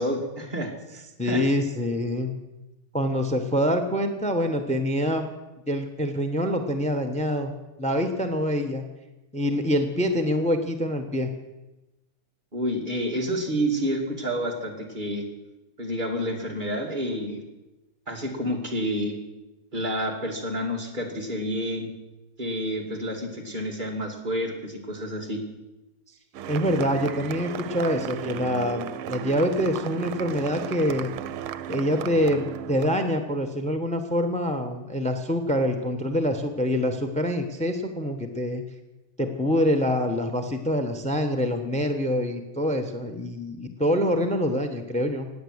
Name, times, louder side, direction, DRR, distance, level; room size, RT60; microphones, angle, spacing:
voice 1, 0.0-1.4 12.5-15.3 15.8-17.4 18.1-19.2 19.7-21.9 22.4-25.4, equal, 25° right, 0 dB, 2.7 m, -29 dB
voice 2, 1.2-2.3 2.9-5.3 5.7-7.5 7.8-8.8 9.3-11.3 26.5-31.1 31.7-38.6 39.2-45.3, equal, 10° left, 7 dB, 0.4 m, -25 dB
sound 1, 26.3-33.1, right 10 dB, 90° right, 1.6 m, -35 dB
17.0 x 9.6 x 8.0 m, 1.0 s
omnidirectional pair, 2.2 m